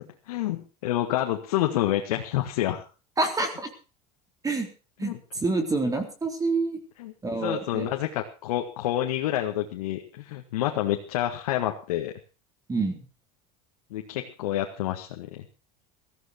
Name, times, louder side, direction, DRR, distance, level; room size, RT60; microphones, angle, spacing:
voice 1, 0.3-2.9 5.0-5.2 7.0-7.1 7.4-12.1 13.9-15.4, left 13 dB, 90° left, 3 dB, 1.9 m, -28 dB
voice 2, 3.2-3.7 4.4-4.7 5.0-5.1 5.4-6.8 7.2-7.9 12.7-13.1, right 3 dB, 20° right, 5 dB, 3.9 m, -27 dB
16.5 x 14.5 x 4.5 m, 0.34 s
supercardioid pair, 110°, 19 cm